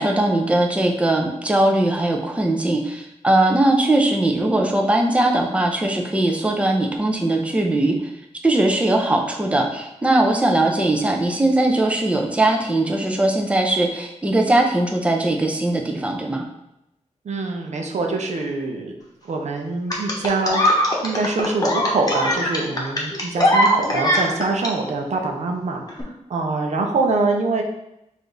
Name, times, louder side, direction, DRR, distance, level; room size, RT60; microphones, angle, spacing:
voice 1, 0.0-8.0 8.4-16.5, right 1 dB, 10° right, 2 dB, 0.6 m, -20 dB
voice 2, 17.2-19.0 19.2-27.6, right 3 dB, 70° right, 2 dB, 0.7 m, -24 dB
sound 1, 19.9-24.7 25.9-26.0, equal, 30° left, 1.0 m, -20 dB
4.9 x 2.6 x 3.9 m, 0.85 s
wide cardioid pair, 100°, 12 cm